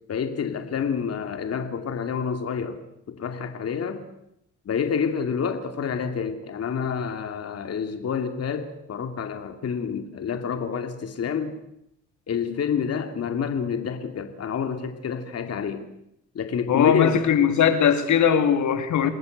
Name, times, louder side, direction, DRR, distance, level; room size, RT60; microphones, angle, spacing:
voice 1, 0.1-2.8 3.1-4.1 4.7-11.6 12.3-15.9 16.3-17.2 19.0-19.1, left 6 dB, 55° left, 7 dB, 2.8 m, -28 dB
voice 2, 16.7-19.1, left 8 dB, 70° left, 9 dB, 3.0 m, -20 dB
29.0 x 20.5 x 8.1 m, 0.79 s
cardioid pair, 90°, 30 cm